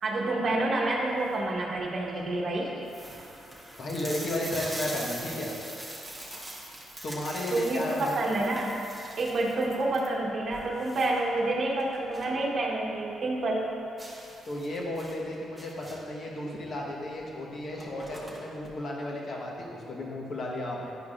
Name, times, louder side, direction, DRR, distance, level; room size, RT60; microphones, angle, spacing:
voice 1, 0.0-2.7 7.5-8.8 9.2-13.7, right 2 dB, 50° right, -2 dB, 1.0 m, -28 dB
sound 1, 1.0-1.5 2.1-2.2 2.4-2.5 2.8-12.4 12.7-12.8 13.2-13.3 14.0-16.2 17.2-17.3 17.6-18.7, right 1 dB, ahead, 1.1 m, -42 dB
voice 2, 3.8-5.5 7.0-8.3 14.5-20.9, left 1 dB, 50° left, -2 dB, 1.1 m, -34 dB
10.0 x 4.7 x 2.4 m, 2.6 s
cardioid pair, 90°, 0 cm